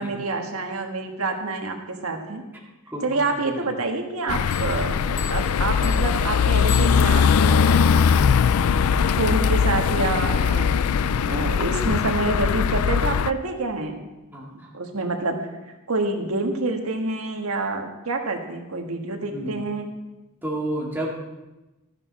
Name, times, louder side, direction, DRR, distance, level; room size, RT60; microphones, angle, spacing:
voice 1, 0.0-2.4 3.0-8.0 9.2-10.8 11.3-14.0 14.5-15.4 15.9-19.9, right 2 dB, 80° right, 3 dB, 1.5 m, -27 dB
voice 2, 2.9-3.7 14.3-14.7 19.2-19.6 20.4-21.1, right 1 dB, 10° right, -3 dB, 2.2 m, -32 dB
sound 1, 4.3-13.3, left 6 dB, 85° left, 0.4 m, -20 dB
sound 2, 4.5-7.5, left 7 dB, 35° left, 0.8 m, -39 dB
13.0 x 9.9 x 4.2 m, 1.0 s
head